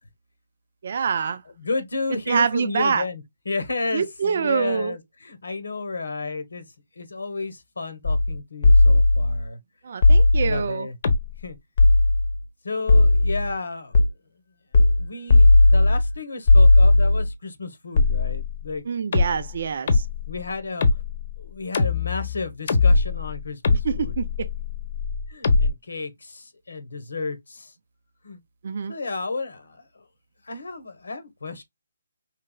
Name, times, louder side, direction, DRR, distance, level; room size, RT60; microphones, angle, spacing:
voice 1, 0.8-1.4 2.3-3.0 3.9-5.0 9.8-10.9 18.9-20.0 23.8-24.5 28.6-28.9, right 6 dB, 55° right, 0.5 m, -25 dB
voice 2, 1.5-6.7 7.0-9.6 10.4-10.9 11.4-11.6 12.6-14.0 15.0-18.8 20.3-21.0 21.4-24.1 25.3-27.7 28.2-28.4 28.9-30.1 30.4-31.6, left 3 dB, 85° left, 1.0 m, -32 dB
sound 1, 8.0-8.4 8.6-9.4 10.0-10.7 11.0-11.5 11.8-12.4 12.9-13.5 13.9-14.1 14.7-15.1 15.3-16.1 16.5-17.3 18.0-18.7 19.1-25.7, left 2 dB, 50° left, 0.8 m, -18 dB
4.6 x 3.2 x 2.2 m
hypercardioid pair, 155°, 0 cm